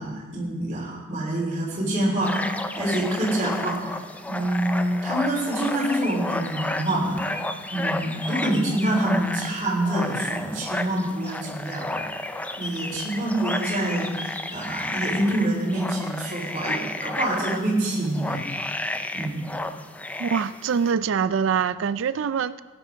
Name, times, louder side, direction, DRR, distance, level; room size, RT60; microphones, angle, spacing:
voice 1, 0.0-4.0 4.3-12.0 12.6-18.4 19.1-19.5, right 1 dB, 35° right, 3.7 m, -26 dB
sound 1, 2.2-20.9, left 1 dB, 5° left, 0.4 m, -32 dB
voice 2, 20.2-22.6, right 6 dB, 60° right, 0.4 m, -24 dB
18.0 x 9.7 x 3.6 m
head